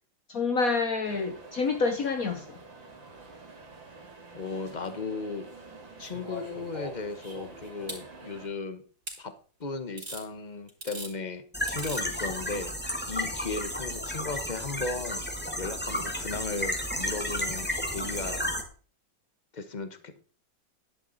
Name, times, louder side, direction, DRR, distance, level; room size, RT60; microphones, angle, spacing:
voice 1, 0.3-2.6, left 4 dB, 50° left, 1.4 m, -28 dB
sound 1, 1.0-8.5, right 3 dB, 80° right, 3.0 m, -48 dB
voice 2, 4.3-5.5 6.0-8.8 9.2-9.3 9.6-12.7 13.1-15.3 15.6-18.4 19.5-20.2, left 3 dB, 30° left, 1.1 m, -36 dB
sound 2, 6.0-8.0 9.1-9.2 10.0-10.2 10.7-11.1 11.7-12.1 13.3-13.4, equal, 35° right, 4.3 m, -40 dB
sound 3, 11.5-18.6, equal, 5° left, 1.5 m, -32 dB
11.0 x 9.8 x 4.1 m
omnidirectional pair, 2.1 m